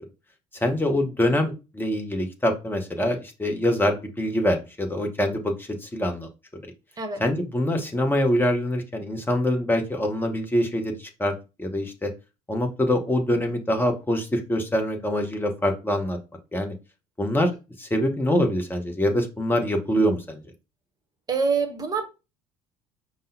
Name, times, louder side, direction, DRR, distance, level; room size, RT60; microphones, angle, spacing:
voice 1, 0.6-6.3 7.2-11.3 11.6-12.1 12.5-16.2 16.5-16.7 17.2-20.4, left 1 dB, 10° left, 0.9 m, -24 dB
voice 2, 21.3-22.1, right 5 dB, 20° right, 0.8 m, -25 dB
5.2 x 2.0 x 2.6 m
figure-of-eight pair, 60°, 18 cm